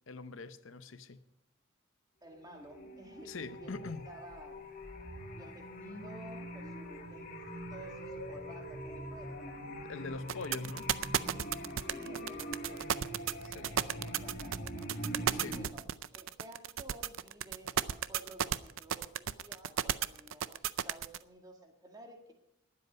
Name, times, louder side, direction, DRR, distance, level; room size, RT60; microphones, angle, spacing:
voice 1, 0.1-1.2 3.2-4.1 9.8-10.9 13.5-13.7 15.3-15.6, left 4 dB, 70° left, 12 dB, 0.7 m, -43 dB
voice 2, 2.2-4.6 5.3-9.6 11.7-14.9 15.5-22.3, right 1 dB, 20° right, 3 dB, 2.0 m, -53 dB
sound 1, 2.3-15.7, equal, 45° left, 1.9 m, -43 dB
sound 2, 10.3-21.2, right 9 dB, 75° right, 0.5 m, -33 dB
20.5 x 7.9 x 5.2 m, 0.80 s
head